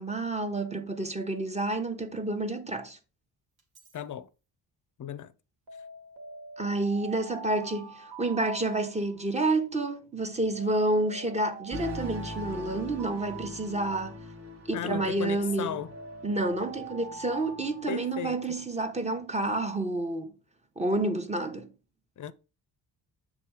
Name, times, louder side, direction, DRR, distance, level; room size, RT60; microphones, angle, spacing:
voice 1, 0.0-3.0 6.6-14.2 14.7-15.8 16.2-20.3 20.8-21.7, right 2 dB, 15° right, 0.9 m, -29 dB
Alarm, 3.6-4.0 5.7-9.4 10.6-14.3 15.4-18.6, right 4 dB, 55° right, 1.7 m, -45 dB
voice 2, 3.9-4.3 5.0-5.3 14.7-15.9 17.9-18.4 22.2-22.3, left 9 dB, 45° left, 0.6 m, -35 dB
sound 1, 11.7-18.5, left 2 dB, 35° right, 1.1 m, -42 dB
7.6 x 3.7 x 4.8 m
cardioid pair, 125°, 42 cm